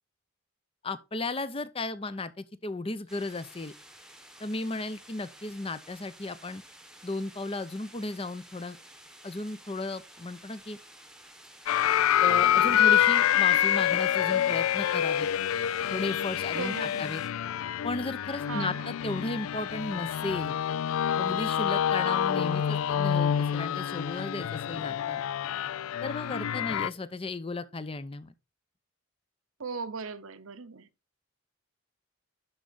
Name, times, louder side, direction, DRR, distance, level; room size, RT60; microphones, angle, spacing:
voice 1, 0.8-3.7 4.4-6.6 7.0-8.8 9.2-10.8 12.2-15.3 15.9-17.2 17.8-20.6 21.2-25.2 26.0-28.3, left 2 dB, 25° left, 0.6 m, -35 dB
sound 1, 3.1-17.3, right 1 dB, 5° right, 1.0 m, -52 dB
sound 2, 11.7-26.9, left 10 dB, 80° left, 0.3 m, -27 dB
voice 2, 16.5-17.1 18.5-18.9 29.6-30.9, right 5 dB, 80° right, 0.8 m, -37 dB
11.0 x 4.6 x 4.0 m
head